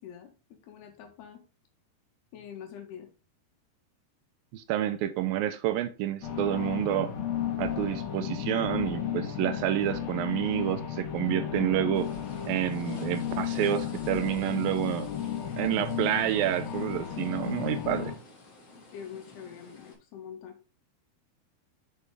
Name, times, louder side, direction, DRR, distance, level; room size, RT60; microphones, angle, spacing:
voice 1, 0.0-1.4 2.3-3.1 18.9-20.6, left 8 dB, 90° left, 3 dB, 3.6 m, -45 dB
voice 2, 4.5-7.1 7.6-12.1 12.5-15.1 15.6-18.1, right 12 dB, 80° right, 11 dB, 2.2 m, -29 dB
sound 1, 6.2-18.2, left 9 dB, 70° left, 3.3 m, -34 dB
sound 2, 11.9-19.9, left 2 dB, 40° left, 4.0 m, -51 dB
7.5 x 6.7 x 3.6 m, 0.32 s
omnidirectional pair, 4.5 m